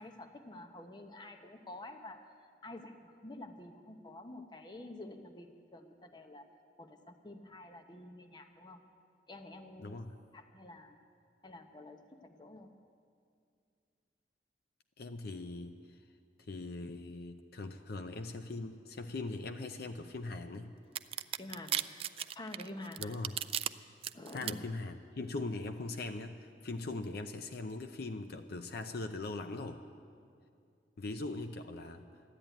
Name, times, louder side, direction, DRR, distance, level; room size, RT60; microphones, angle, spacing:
voice 1, 0.0-6.5 6.8-8.8 9.3-10.0 10.3-11.0 11.4-12.7 21.4-21.9 22.3-23.1 24.1-24.5, left 1 dB, 25° left, 6 dB, 0.9 m, -49 dB
voice 2, 9.8-10.2 15.0-16.0 16.5-20.8 23.0-23.4 24.3-29.8 31.0-32.0, left 2 dB, 60° left, 7 dB, 0.6 m, -41 dB
sound 1, 21.0-23.7 24.0-24.5, right 10 dB, 35° right, 0.3 m, -35 dB
13.5 x 11.0 x 9.0 m, 2.4 s
head